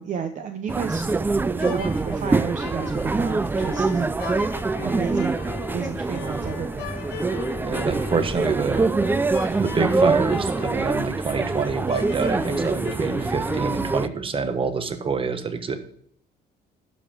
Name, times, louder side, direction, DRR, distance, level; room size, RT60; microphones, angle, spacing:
voice 1, 0.0-4.1 4.8-5.3 5.7-6.9, right 7 dB, 45° right, 7 dB, 0.8 m, -32 dB
sound 1, 0.7-14.1, right 3 dB, 10° right, 0.3 m, -25 dB
sound 2, 1.5-13.8, left 7 dB, 90° left, 1.3 m, -38 dB
voice 2, 7.6-8.9 9.6-15.8, right 5 dB, 30° right, 9 dB, 1.2 m, -26 dB
12.0 x 5.3 x 5.2 m, 0.66 s
cardioid pair, 110°, 17 cm